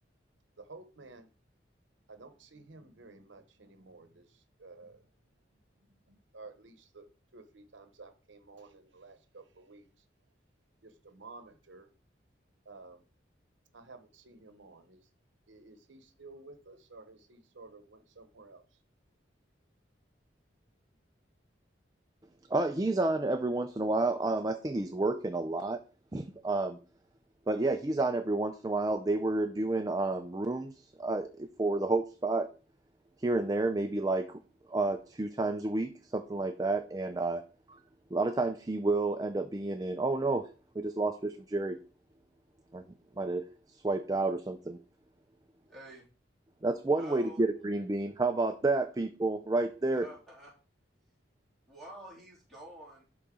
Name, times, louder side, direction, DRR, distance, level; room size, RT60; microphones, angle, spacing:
voice 1, 0.6-1.3 2.1-5.0 6.1-7.1 7.3-9.9 10.8-11.9 12.6-13.0 13.7-15.0 15.5-18.6, right 3 dB, 80° right, 9 dB, 0.9 m, -53 dB
voice 2, 22.5-25.8 26.1-26.8 27.5-32.5 33.2-34.4 34.7-37.8 38.1-40.5 40.8-41.8 42.7-42.8 43.2-43.5 43.8-44.8 46.6-50.1, right 2 dB, 20° right, 7 dB, 0.4 m, -30 dB
voice 3, 45.7-46.0 46.9-47.4 49.9-50.5 51.7-53.0, right 1 dB, 5° left, -5 dB, 3.1 m, -49 dB
11.5 x 4.0 x 3.7 m, 0.35 s
head